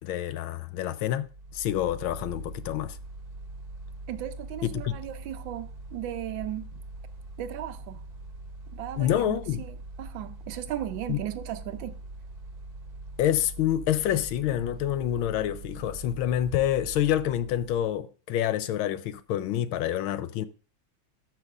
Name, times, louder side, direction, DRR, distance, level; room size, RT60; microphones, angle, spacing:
voice 1, 0.0-1.3 1.5-3.0 4.6-4.9 9.0-9.6 11.1-11.2 13.2-20.5, left 11 dB, 85° left, 1.5 m, -27 dB
Mechanical fan, 1.1-18.0, right 2 dB, 55° right, 1.5 m, -42 dB
voice 2, 4.1-6.8 7.4-8.0 8.7-12.0, right 12 dB, 75° right, 1.3 m, -36 dB
13.0 x 6.0 x 2.4 m
omnidirectional pair, 2.2 m